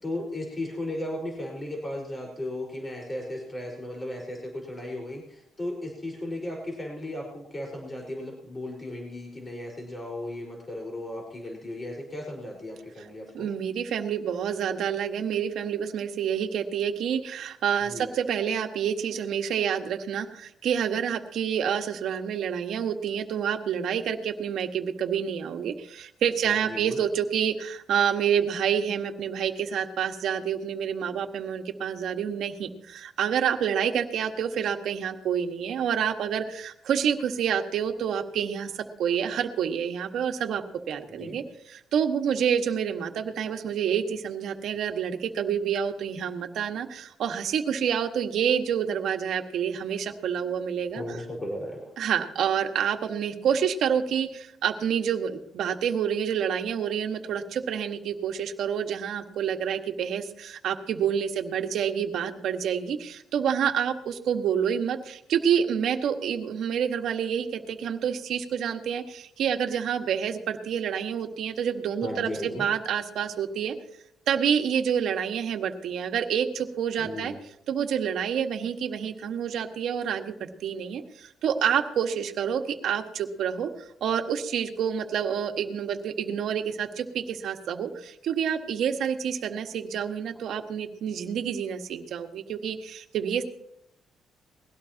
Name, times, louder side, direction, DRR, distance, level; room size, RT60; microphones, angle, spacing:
voice 1, 0.0-13.5 17.8-18.1 26.4-27.0 41.1-41.4 50.9-51.9 72.0-72.6 77.0-77.3, left 1 dB, 25° left, -1 dB, 4.9 m, -36 dB
voice 2, 13.3-41.4 41.7-51.2 52.0-73.7 74.3-77.3 77.7-83.7 84.0-93.4, right 8 dB, 75° right, 4 dB, 1.6 m, -28 dB
21.5 x 17.0 x 3.0 m, 0.78 s
cardioid pair, 90°, 0 cm